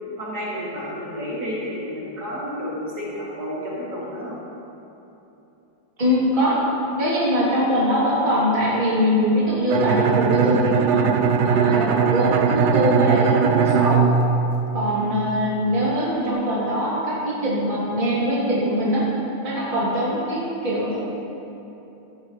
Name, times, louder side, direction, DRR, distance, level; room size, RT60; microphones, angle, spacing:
voice 1, 0.2-4.4 15.0-15.1, equal, 55° right, -7 dB, 3.1 m, -31 dB
voice 2, 6.0-6.7 7.0-11.1 11.4-14.1 14.7-19.1 19.4-21.0, equal, 25° right, -8 dB, 2.8 m, -22 dB
Bowed string instrument, 9.7-15.4, right 6 dB, 75° right, 0.6 m, -20 dB
17.5 x 13.5 x 3.2 m, 3.0 s
omnidirectional pair, 2.0 m